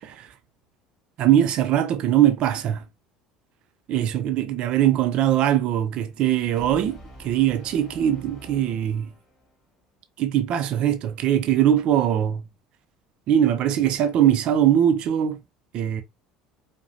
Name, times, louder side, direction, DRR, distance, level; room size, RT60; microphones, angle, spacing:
voice 1, 0.0-0.3 1.2-2.8 3.9-9.1 10.2-12.5 13.3-15.4 15.7-16.0, right 11 dB, 50° right, 0.6 m, -21 dB
Brass instrument, 6.6-9.6, right 1 dB, 30° left, 2.1 m, -46 dB
4.7 x 2.2 x 2.7 m
hypercardioid pair, 65°, 2 cm